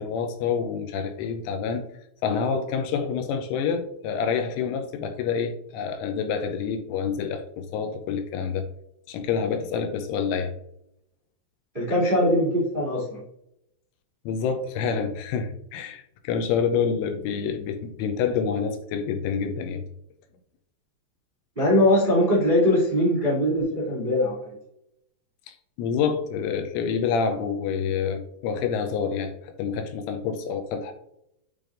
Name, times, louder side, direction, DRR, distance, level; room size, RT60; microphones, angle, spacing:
voice 1, 0.0-1.8 2.2-8.7 9.1-10.5 14.3-19.8 25.5-30.9, left 6 dB, 80° left, 6 dB, 3.0 m, -27 dB
voice 2, 11.7-13.2 21.5-24.5, left 1 dB, 40° right, -8 dB, 0.6 m, -21 dB
8.8 x 4.8 x 2.5 m, 0.78 s
omnidirectional pair, 5.8 m